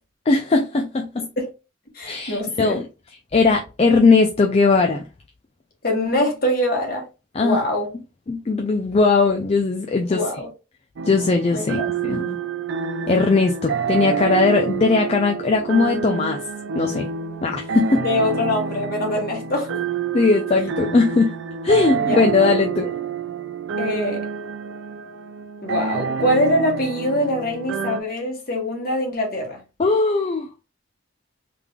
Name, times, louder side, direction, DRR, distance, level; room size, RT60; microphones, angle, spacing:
voice 1, 0.3-1.3 2.0-2.8 3.3-5.0 7.3-7.6 8.3-10.3 11.1-12.4 13.1-16.4 16.7-17.1 17.4-18.0 20.1-21.4 21.6-22.9 29.8-30.5, left 4 dB, 30° left, 0.4 m, -19 dB
voice 2, 1.2-1.5 1.9-2.8 5.8-7.1 7.4-7.9 10.1-10.5 11.5-11.9 18.0-19.8 22.0-22.6 23.8-24.2 25.6-29.6, left 1 dB, 45° left, 1.3 m, -24 dB
sound 1, 11.0-28.0, right 6 dB, 60° right, 0.3 m, -28 dB
3.5 x 3.3 x 2.3 m
head